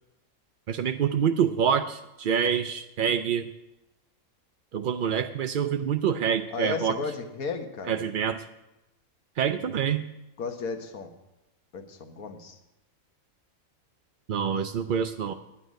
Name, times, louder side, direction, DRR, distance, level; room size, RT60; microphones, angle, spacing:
voice 1, 0.7-3.5 4.7-7.0 7.9-8.4 9.4-10.0 14.3-15.3, right 8 dB, 75° right, 7 dB, 0.4 m, -26 dB
voice 2, 6.5-8.0 10.4-11.1 11.7-12.6, left 4 dB, 80° left, 6 dB, 1.6 m, -34 dB
9.8 x 9.2 x 6.3 m, 0.93 s
omnidirectional pair, 1.5 m